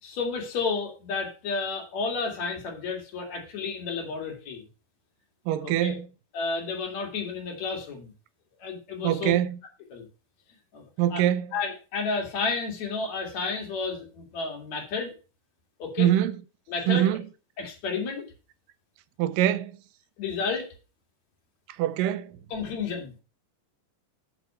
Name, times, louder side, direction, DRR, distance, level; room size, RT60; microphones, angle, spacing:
voice 1, 0.0-4.6 5.6-6.0 6.3-8.1 8.6-9.3 9.9-10.0 10.7-11.2 11.5-15.1 15.8-16.1 16.7-17.1 17.6-18.2 20.2-20.7 22.5-23.2, left 4 dB, 55° left, 3.3 m, -31 dB
voice 2, 5.5-6.1 9.0-9.6 11.0-11.5 16.0-16.4 16.9-17.2 19.2-19.8 21.8-22.4, right 12 dB, 85° right, 2.3 m, -24 dB
8.3 x 6.2 x 5.6 m
omnidirectional pair, 3.9 m